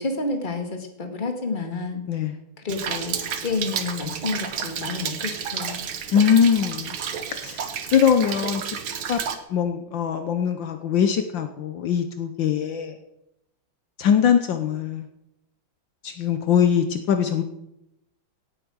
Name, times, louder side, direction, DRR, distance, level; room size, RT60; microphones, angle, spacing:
voice 1, 0.0-2.0 2.6-5.9, left 3 dB, 25° left, 5 dB, 1.9 m, -30 dB
voice 2, 2.1-2.4 6.1-7.0 7.3-7.7 7.9-8.8 9.1-9.2 9.5-13.0 14.0-15.0 16.0-17.4, left 8 dB, 70° left, 8 dB, 1.6 m, -22 dB
Rain, 2.7-9.3, right 7 dB, 85° right, 2.1 m, -31 dB
17.5 x 8.5 x 6.3 m, 0.85 s
omnidirectional pair, 2.2 m